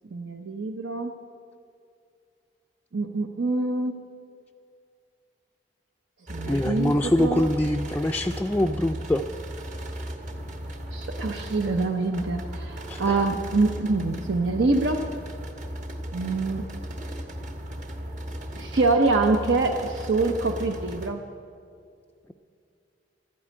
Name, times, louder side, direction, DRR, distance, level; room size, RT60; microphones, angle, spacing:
voice 1, 0.1-1.2 2.9-3.9 6.3-7.5 10.9-15.1 16.1-16.6 18.6-21.2, right 3 dB, 85° right, 5 dB, 0.8 m, -25 dB
sound 1, 6.3-21.1, right 1 dB, 45° right, 1.3 m, -36 dB
voice 2, 6.5-9.2 12.9-13.2, left 1 dB, 10° left, 3 dB, 0.3 m, -24 dB
12.5 x 8.6 x 9.7 m, 2.4 s
head